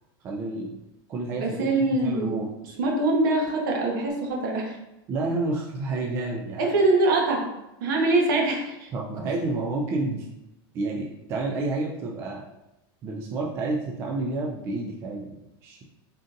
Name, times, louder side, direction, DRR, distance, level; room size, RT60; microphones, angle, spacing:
voice 1, 0.2-0.8 1.1-1.6 2.0-2.7 5.1-6.7 8.9-10.3 10.7-12.4 13.0-15.8, right 2 dB, 20° right, -2 dB, 0.3 m, -30 dB
voice 2, 1.3-2.4 2.8-4.8 6.6-7.5 7.8-8.9, right 2 dB, 60° right, 0 dB, 1.1 m, -23 dB
3.9 x 3.8 x 2.5 m, 0.93 s
supercardioid pair, 170°, 13 cm